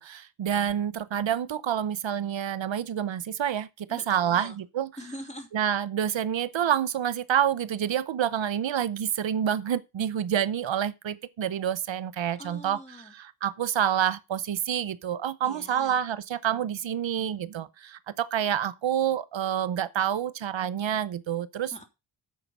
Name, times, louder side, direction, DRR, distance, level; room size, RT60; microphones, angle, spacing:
voice 1, 0.0-4.9 5.5-12.8 13.1-21.7, right 9 dB, 85° right, 0.8 m, -28 dB
voice 2, 3.9-4.6 5.0-5.5 12.4-13.1 15.4-16.0 21.7-21.8, equal, 15° left, 3.1 m, -43 dB
9.5 x 6.6 x 5.9 m
wide cardioid pair, 125°, 44 cm